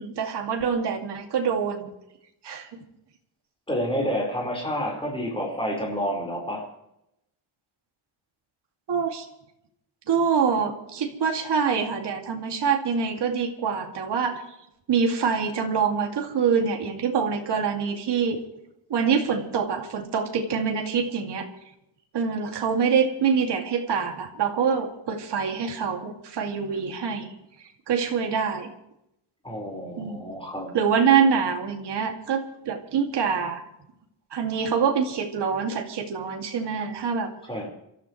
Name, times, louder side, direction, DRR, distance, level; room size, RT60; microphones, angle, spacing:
voice 1, 0.0-1.9 2.4-2.8 8.9-9.3 10.1-14.4 14.9-18.4 18.9-21.5 22.1-27.3 27.9-28.7 30.0-30.2 30.7-33.6 34.3-37.3, right 6 dB, 55° right, 3 dB, 2.5 m, -25 dB
voice 2, 3.7-6.7 29.4-30.7 37.5-37.7, equal, 10° left, -1 dB, 4.8 m, -29 dB
27.5 x 14.0 x 3.3 m, 0.82 s
wide cardioid pair, 180°, 50 cm